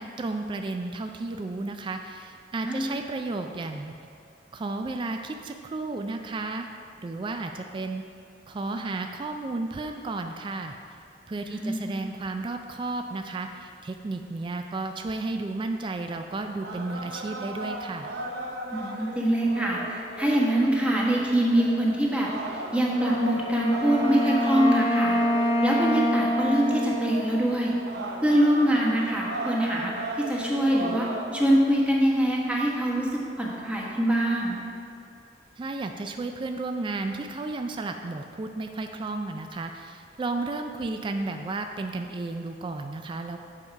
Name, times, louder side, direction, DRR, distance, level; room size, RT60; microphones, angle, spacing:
voice 1, 0.0-3.9 4.5-6.7 7.0-8.0 8.5-10.7 11.3-18.1 35.6-43.4, right 3 dB, 30° right, 5 dB, 0.3 m, -33 dB
voice 2, 2.6-3.0 11.4-11.8 18.7-27.8 28.2-34.6, right 1 dB, 5° right, -4 dB, 1.1 m, -24 dB
sound 1, 16.3-31.5, right 2 dB, 65° right, 0.7 m, -37 dB
Wind instrument woodwind instrument, 22.9-28.4, left 1 dB, 30° left, 0.8 m, -26 dB
7.7 x 4.6 x 5.8 m, 2.4 s
head